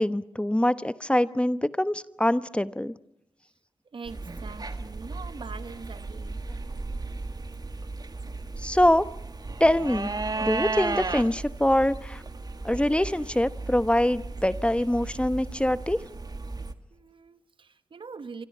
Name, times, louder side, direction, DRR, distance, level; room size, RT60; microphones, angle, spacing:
voice 1, 0.0-2.9 8.6-9.1 9.6-10.1 10.4-12.2 12.6-16.0, left 1 dB, 10° left, 14 dB, 1.0 m, -24 dB
voice 2, 3.9-6.4 16.9-18.5, right 5 dB, 65° right, 13 dB, 1.3 m, -43 dB
sound 1, 4.1-16.7, right 3 dB, 45° right, 1.6 m, -35 dB
27.0 x 25.0 x 5.6 m, 0.78 s
cardioid pair, 40°, 9 cm